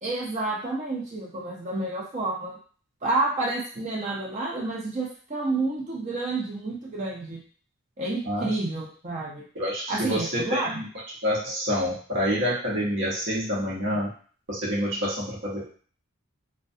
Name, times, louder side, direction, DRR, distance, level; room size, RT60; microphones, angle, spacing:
voice 1, 0.0-2.5 3.0-7.4 8.0-9.4 9.9-10.7 13.9-14.0, right 2 dB, 35° right, -3 dB, 0.6 m, -29 dB
voice 2, 9.5-10.9 11.2-14.1 14.5-15.7, equal, 60° right, -5 dB, 0.9 m, -27 dB
2.2 x 2.2 x 2.6 m, 0.43 s
head